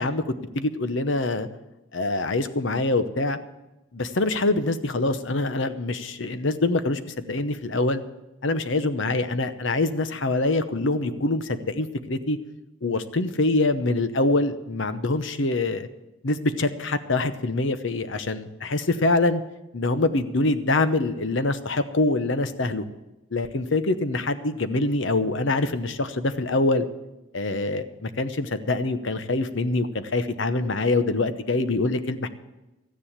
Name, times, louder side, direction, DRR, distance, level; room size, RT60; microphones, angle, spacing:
voice 1, 0.0-1.5 1.9-3.4 3.9-8.0 8.4-12.4 12.8-15.9 16.2-19.4 19.7-22.9 23.3-26.9 27.3-32.3, left 2 dB, 60° left, 11 dB, 0.9 m, -25 dB
13.5 x 10.0 x 7.3 m, 0.99 s
head